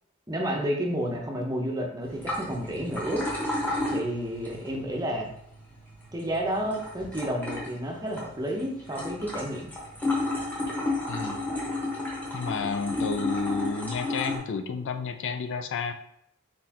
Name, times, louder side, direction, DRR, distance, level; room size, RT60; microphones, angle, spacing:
voice 1, 0.3-3.3 3.9-5.3 6.1-9.7, equal, 15° right, 1 dB, 0.7 m, -31 dB
sound 1, 2.0-14.4, left 2 dB, 10° left, 1.2 m, -33 dB
voice 2, 11.1-11.5 12.3-15.9, left 5 dB, 55° left, 8 dB, 0.4 m, -31 dB
4.3 x 4.1 x 2.8 m, 0.72 s
head